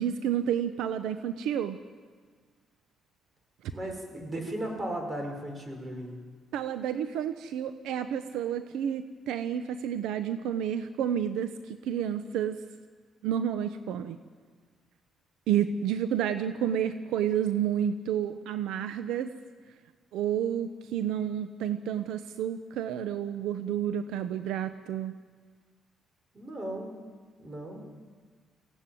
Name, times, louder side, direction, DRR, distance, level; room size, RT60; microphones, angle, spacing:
voice 1, 0.0-1.8 6.5-12.6 13.2-14.2 15.5-19.3 20.1-25.2, right 9 dB, 90° right, 10 dB, 0.9 m, -30 dB
voice 2, 3.7-6.2 26.3-26.9 27.4-27.8, right 1 dB, 30° right, 3 dB, 5.5 m, -36 dB
22.0 x 16.5 x 9.2 m, 1.5 s
cardioid pair, 90°, 0 cm